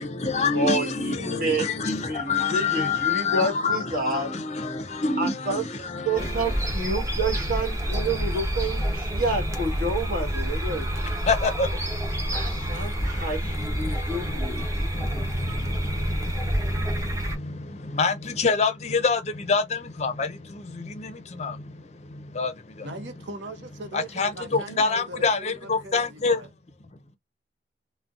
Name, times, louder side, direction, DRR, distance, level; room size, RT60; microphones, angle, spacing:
voice 1, 0.0-6.6 10.7-22.9 23.9-26.4, left 4 dB, 35° left, 0.5 m, -28 dB
voice 2, 0.5-4.3 5.2-5.6 6.0-11.0 12.3-14.6, right 2 dB, 50° right, 1.3 m, -29 dB
sound 1, 6.2-17.4, equal, 15° right, 0.8 m, -28 dB
voice 3, 22.8-26.5, right 2 dB, 80° right, 0.7 m, -40 dB
3.8 x 2.1 x 2.4 m
head